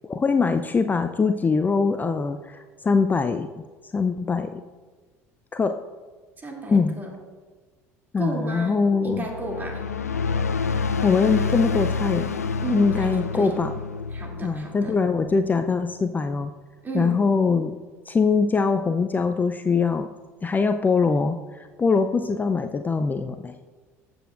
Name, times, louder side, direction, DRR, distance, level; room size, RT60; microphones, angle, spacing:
voice 1, 0.0-3.5 3.9-4.6 5.5-5.8 6.7-7.0 8.1-9.3 11.0-12.3 12.7-13.7 14.4-16.5 16.9-17.8 18.1-20.1 20.4-23.5, left 4 dB, 20° left, 8 dB, 0.5 m, -22 dB
voice 2, 6.4-7.1 8.2-8.8 9.0-9.8 12.6-13.5 14.1-15.0 16.8-17.2, right 2 dB, 25° right, 0 dB, 2.7 m, -33 dB
sound 1, 9.1-15.7, left 5 dB, 90° left, 0.4 m, -28 dB
14.5 x 7.8 x 2.5 m, 1.4 s
figure-of-eight pair, 65°, 8 cm